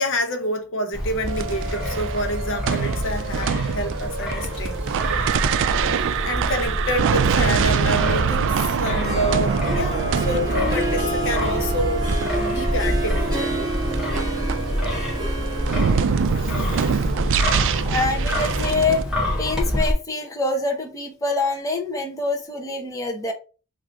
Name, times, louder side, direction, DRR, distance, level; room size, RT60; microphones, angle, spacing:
voice 1, 0.0-4.8 5.7-6.0 6.2-12.1 12.4-13.6 16.2-17.5, equal, 60° left, 0.9 m, -28 dB
Wind, 0.9-19.9, left 1 dB, 5° right, 1.4 m, -27 dB
sound 1, 1.3-19.0, right 7 dB, 60° right, 0.3 m, -25 dB
Harp, 9.0-17.8, right 1 dB, 20° right, 1.8 m, -30 dB
voice 2, 17.9-19.0 19.4-23.3, left 3 dB, 15° left, 0.7 m, -25 dB
3.6 x 2.6 x 4.5 m
head